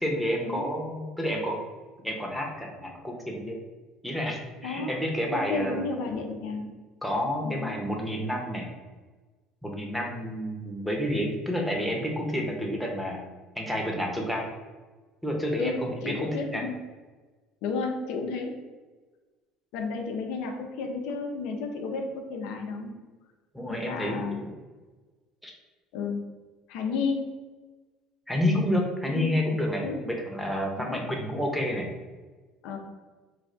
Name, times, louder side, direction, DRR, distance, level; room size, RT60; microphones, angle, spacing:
voice 1, 0.0-1.6 2.0-3.6 4.0-6.1 7.0-8.7 9.6-13.2 13.6-14.5 15.2-16.6 23.5-24.5 25.4-25.5 28.3-31.8, equal, ahead, -1 dB, 0.8 m, -29 dB
voice 2, 4.6-5.0 5.3-6.7 7.4-7.7 15.6-15.7 16.0-16.8 17.6-18.5 19.7-22.9 23.7-24.4 25.9-26.2 26.7-27.3 29.1-29.3 29.8-30.0 30.8-31.0 32.6-32.8, left 4 dB, 80° left, 3 dB, 0.6 m, -32 dB
3.2 x 2.3 x 3.8 m, 1.3 s
supercardioid pair, 95°, 0 cm